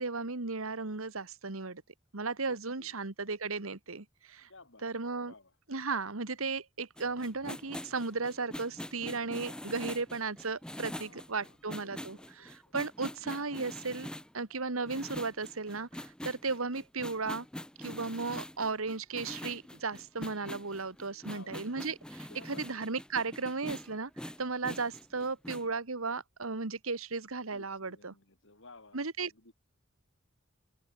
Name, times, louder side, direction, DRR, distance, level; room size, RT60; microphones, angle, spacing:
voice 1, 0.0-1.8 2.1-4.5 4.8-5.3 5.7-14.1 14.3-17.5 17.8-28.1 28.9-29.3, right 4 dB, 80° right, 1.8 m, -35 dB
voice 2, 2.4-3.0 4.5-4.9 5.2-5.6 7.6-7.7 11.0-12.8 15.9-16.0 21.1-21.8 22.3-22.6 27.5-29.5, left 3 dB, 65° left, 7.9 m, -57 dB
sound 1, 7.0-14.3 14.8-25.7, left 1 dB, 5° left, 1.2 m, -44 dB
open air
head